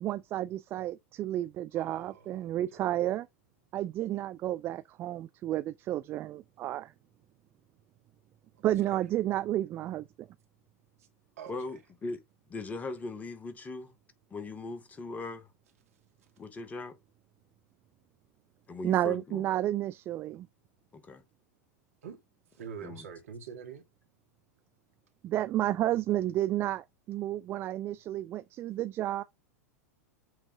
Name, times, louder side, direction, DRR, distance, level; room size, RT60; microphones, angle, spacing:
voice 1, 0.0-3.3 3.7-6.9 8.6-10.3 18.8-20.5 25.2-29.2, right 13 dB, 25° right, 0.3 m, -31 dB
voice 2, 1.7-2.9 8.8-9.0 11.0-11.1 11.4-11.7 22.0-22.2 22.5-23.9, right 6 dB, 60° right, 2.0 m, -45 dB
voice 3, 11.5-12.2 12.5-13.9 14.3-15.5 16.4-17.0 18.7-19.4 20.9-21.2 22.8-23.1, left 3 dB, 15° left, 1.0 m, -39 dB
7.8 x 3.5 x 3.5 m
figure-of-eight pair, 95°, 9 cm